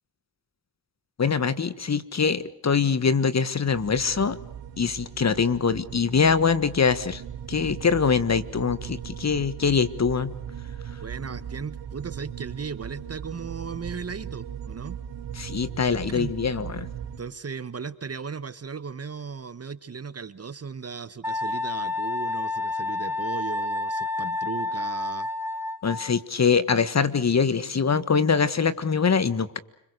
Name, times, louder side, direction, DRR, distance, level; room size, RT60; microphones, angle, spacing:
voice 1, 1.2-4.4 4.8-7.2 7.5-10.3 15.3-16.9 25.8-29.6, left 5 dB, 35° left, 15 dB, 1.6 m, -23 dB
sound 1, 3.6-17.2, right 8 dB, 75° right, 2.5 m, -38 dB
voice 2, 11.0-15.0 16.1-16.3 17.2-25.3, right 5 dB, 35° right, 15 dB, 1.3 m, -36 dB
Wind instrument woodwind instrument, 21.2-26.2, left 3 dB, 5° right, 2.3 m, -29 dB
29.5 x 21.5 x 6.6 m, 0.80 s
cardioid pair, 70°, 43 cm